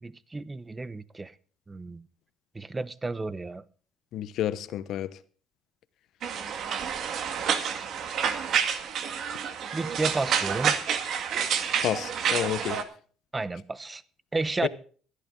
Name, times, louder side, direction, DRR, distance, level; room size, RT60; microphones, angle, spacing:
voice 1, 0.0-1.3 1.7-2.1 2.5-3.6 9.7-10.7 13.3-14.0 14.3-14.7, right 3 dB, 20° right, 0.8 m, -32 dB
voice 2, 4.1-5.1 11.8-12.8 14.6-14.7, left 11 dB, 65° left, 0.9 m, -30 dB
sound 1, 6.2-12.8, right 7 dB, 60° right, 1.8 m, -29 dB
16.0 x 11.5 x 3.8 m
supercardioid pair, 90°, 0 cm